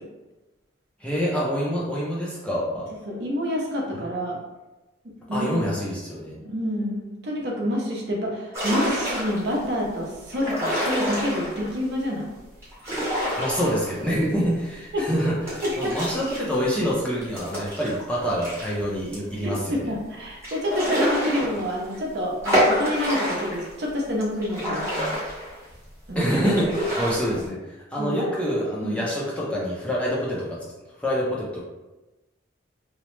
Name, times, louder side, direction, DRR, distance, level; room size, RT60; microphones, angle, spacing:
voice 1, 1.0-2.9 4.0-4.1 5.3-6.4 13.3-19.9 26.1-30.6 31.0-31.6, equal, 5° left, -6 dB, 0.4 m, -26 dB
voice 2, 3.1-4.4 5.3-5.5 6.4-12.3 14.9-15.0 15.6-15.9 19.4-25.2 26.1-26.3 28.0-28.3 28.8-29.0, equal, 55° right, -2 dB, 0.6 m, -28 dB
sound 1, 8.5-9.6 10.3-11.7 12.6-14.2 14.5-14.6 15.5-18.7 19.1-19.2 19.5-19.6 20.4-21.9 22.4-23.7 24.2-25.8 26.3-27.4, equal, 15° right, 0.8 m, -27 dB
2.9 x 2.0 x 3.1 m, 1.1 s
head